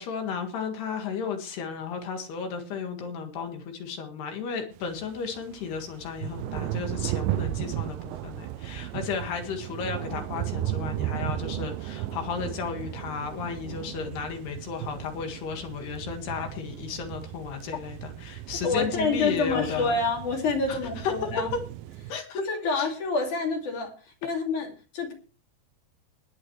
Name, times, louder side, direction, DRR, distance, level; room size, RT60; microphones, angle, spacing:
voice 1, 0.0-20.0 20.7-21.3 22.1-22.4 22.7-22.9, left 6 dB, 75° left, 4 dB, 3.8 m, -34 dB
sound 1, 4.8-22.2, right 14 dB, 80° right, 2.1 m, -35 dB
voice 2, 18.6-21.5 22.3-23.9 24.2-25.1, left 3 dB, 50° left, 2 dB, 3.7 m, -27 dB
21.0 x 8.5 x 3.2 m, 0.34 s
omnidirectional pair, 4.8 m